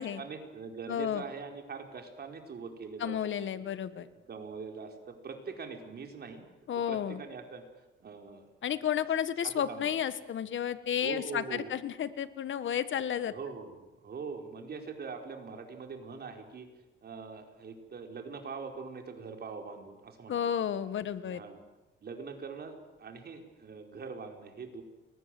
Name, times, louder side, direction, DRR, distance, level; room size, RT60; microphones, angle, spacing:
voice 1, 0.2-3.6 4.3-6.5 6.9-7.6 8.0-8.5 9.4-9.9 11.0-11.7 13.3-16.7 17.0-20.4 21.2-21.6 22.0-24.8, right 5 dB, 50° right, 4 dB, 4.6 m, -43 dB
voice 2, 0.9-1.2 3.0-4.1 6.7-7.2 8.6-13.3 20.3-21.4, left 9 dB, 70° left, 13 dB, 1.5 m, -32 dB
30.0 x 23.0 x 7.8 m, 1.1 s
cardioid pair, 125°, 20 cm